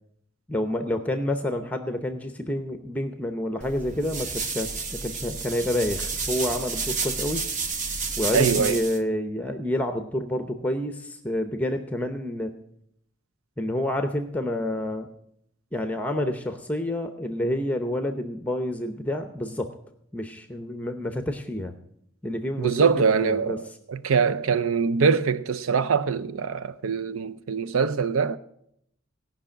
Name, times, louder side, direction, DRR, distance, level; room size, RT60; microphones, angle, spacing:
voice 1, 0.5-7.4 8.2-12.5 13.6-15.1 15.7-19.8 20.1-21.7 22.2-23.6, left 1 dB, 5° left, 0.7 m, -28 dB
sound 1, 3.6-9.0, right 4 dB, 35° right, 0.9 m, -30 dB
voice 2, 8.3-8.8 22.6-23.6 23.9-28.4, right 5 dB, 90° right, 0.5 m, -23 dB
17.5 x 5.9 x 8.7 m
head